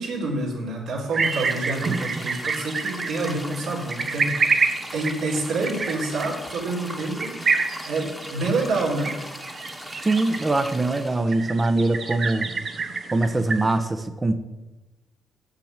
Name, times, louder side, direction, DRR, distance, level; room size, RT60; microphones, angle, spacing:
voice 1, 0.0-4.4 4.9-9.1, right 2 dB, 75° right, -2 dB, 3.7 m, -28 dB
sound 1, 1.1-13.8, right 4 dB, 50° right, 1.1 m, -28 dB
sound 2, 1.2-11.2, left 1 dB, 5° left, 1.5 m, -39 dB
voice 2, 10.0-12.5 13.1-14.4, right 2 dB, 25° right, 10 dB, 1.1 m, -22 dB
8.0 x 7.6 x 7.5 m, 1.1 s
supercardioid pair, 70°, 0 cm